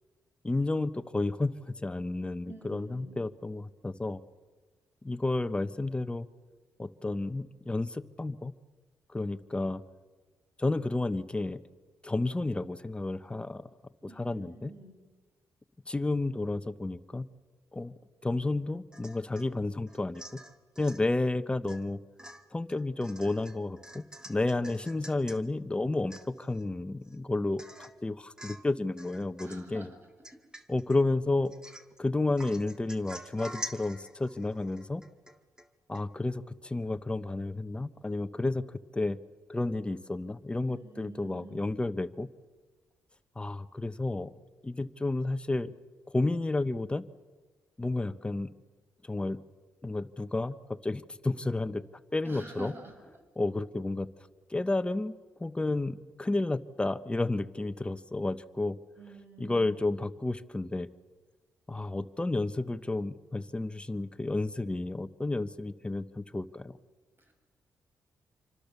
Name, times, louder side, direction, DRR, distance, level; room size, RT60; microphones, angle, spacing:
voice 1, 0.4-4.2 5.0-6.3 6.8-8.5 9.1-9.8 10.6-11.6 12.0-13.7 14.2-14.7 15.9-17.3 17.7-17.9 18.2-20.2 20.8-22.0 22.5-29.9 30.7-31.5 32.0-35.0 35.9-39.2 39.5-42.3 43.3-44.3 44.6-45.7 46.1-47.0 47.8-48.5 49.0-49.4 49.8-51.8 52.1-52.7 53.4-54.1 54.5-58.8 59.4-60.9 61.7-66.7, left 2 dB, 15° left, 11 dB, 1.2 m, -31 dB
voice 2, 2.4-3.2 14.0-15.0 29.4-30.0 30.3-30.4 40.7-41.7 52.2-53.0 59.0-59.8 67.2-67.3, right 3 dB, 40° right, 3 dB, 6.3 m, -48 dB
Domestic sounds home sounds / Chink clink / Drip, 18.9-19.5 19.9-21.0 21.7-21.9 22.2-25.4 25.8-25.9 26.1-26.6 27.0-27.1 27.6-28.0 28.4-28.7 29.0-29.7 30.2-31.0 31.4-32.0 32.4-35.7 35.9-36.0, equal, 10° right, 1.9 m, -46 dB
27.0 x 25.0 x 7.0 m, 1.3 s
cardioid pair, 75°, 6 cm